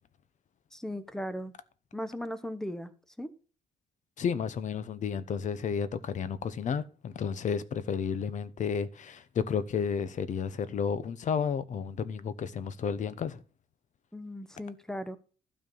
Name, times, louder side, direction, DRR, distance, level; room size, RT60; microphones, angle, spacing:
voice 1, 0.7-1.5 1.9-2.9 3.2-3.3 14.1-15.2, equal, 5° left, 0.9 m, -37 dB
voice 2, 4.2-13.4, left 6 dB, 50° left, 0.8 m, -32 dB
12.5 x 4.3 x 6.9 m
cardioid pair, 125°, 16 cm